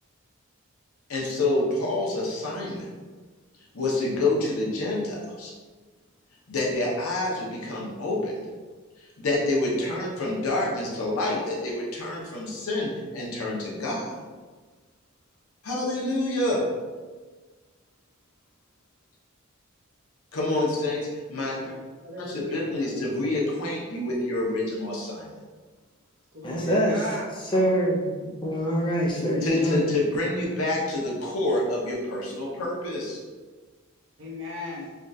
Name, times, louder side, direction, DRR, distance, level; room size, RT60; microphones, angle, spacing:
voice 1, 1.1-2.9 3.7-5.5 6.5-8.3 9.0-14.2 15.6-16.6 20.3-21.7 22.2-25.3 29.4-33.2, left 2 dB, 80° left, -3 dB, 0.8 m, -27 dB
voice 2, 21.6-23.4 26.3-27.3 34.2-34.9, left 1 dB, 60° right, -4 dB, 0.8 m, -36 dB
voice 3, 26.4-29.9, equal, 20° left, -3 dB, 0.5 m, -25 dB
3.4 x 2.3 x 2.6 m, 1.4 s
head